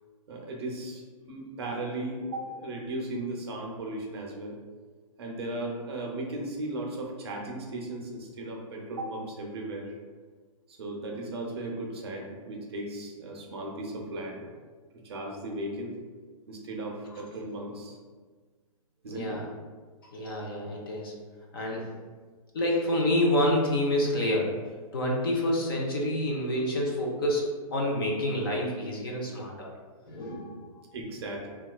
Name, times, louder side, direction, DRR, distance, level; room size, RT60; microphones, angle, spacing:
voice 1, 0.3-4.6 5.2-9.9 10.7-14.4 15.0-16.0 16.5-18.0 19.0-19.4 30.9-31.5, right 1 dB, 45° right, -1 dB, 0.6 m, -36 dB
voice 2, 19.1-19.5 20.1-21.1 21.5-21.9 22.5-24.5 24.9-29.7 30.0-30.7, left 1 dB, 40° left, -2 dB, 0.5 m, -28 dB
4.0 x 2.3 x 2.2 m, 1.5 s
hypercardioid pair, 175°, 19 cm